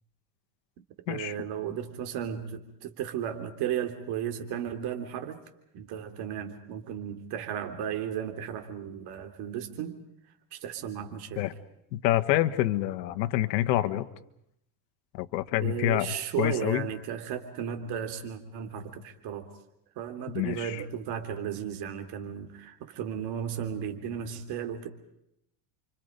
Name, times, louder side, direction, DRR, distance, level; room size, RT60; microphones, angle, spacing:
voice 1, 1.1-5.4 5.7-10.0 10.5-11.5 15.6-19.5 19.9-24.9, right 9 dB, 50° right, 6 dB, 3.3 m, -35 dB
voice 2, 11.9-14.1 15.1-16.8 20.3-20.8, left 15 dB, 85° left, 10 dB, 1.4 m, -27 dB
30.0 x 25.5 x 5.2 m, 0.78 s
supercardioid pair, 140°, 49 cm